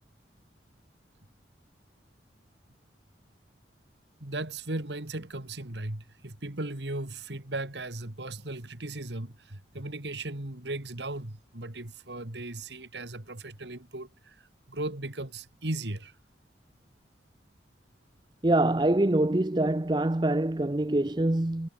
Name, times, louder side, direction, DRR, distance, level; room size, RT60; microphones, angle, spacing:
voice 1, 4.2-16.2, right 2 dB, 75° right, 2.5 m, -37 dB
voice 2, 18.4-21.7, right 1 dB, 25° right, 0.7 m, -25 dB
head